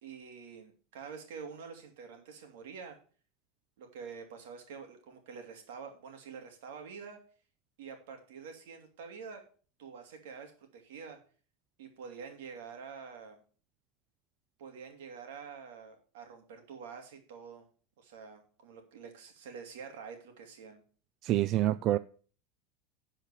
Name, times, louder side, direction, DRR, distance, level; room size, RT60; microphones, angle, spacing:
voice 1, 0.0-3.0 3.8-7.2 7.8-9.4 9.8-11.2 11.8-13.4 14.6-17.7 18.0-20.8, right 6 dB, 80° right, 2.9 m, -47 dB
voice 2, 21.2-22.0, right 14 dB, 45° right, 0.4 m, -27 dB
11.0 x 5.0 x 6.8 m
supercardioid pair, 125°, 0 cm